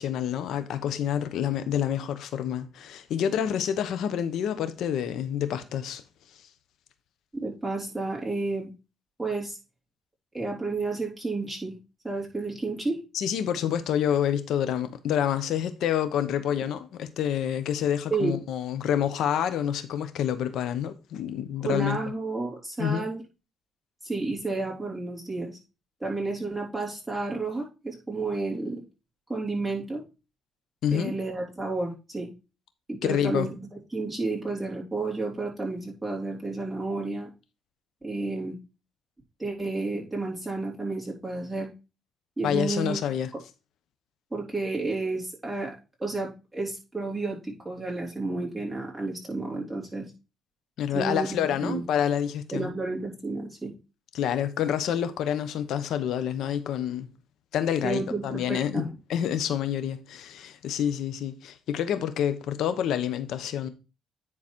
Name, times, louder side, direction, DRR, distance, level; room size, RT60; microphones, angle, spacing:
voice 1, 0.0-6.0 13.1-22.0 22.8-23.1 30.8-31.1 33.0-33.5 42.4-43.3 50.8-52.7 54.1-57.1 57.5-63.7, left 9 dB, 80° left, 1.0 m, -28 dB
voice 2, 7.3-8.7 9.2-9.6 10.3-11.8 12.0-13.0 18.1-18.3 21.6-23.2 24.0-25.6 26.0-28.8 29.3-30.0 30.9-32.3 32.9-37.3 38.0-38.6 39.4-41.7 42.4-43.0 44.3-45.7 46.0-50.1 50.9-51.8 52.5-53.7 57.8-58.9, right 3 dB, 10° right, 3.6 m, -31 dB
10.0 x 4.1 x 4.4 m
cardioid pair, 90°, 0 cm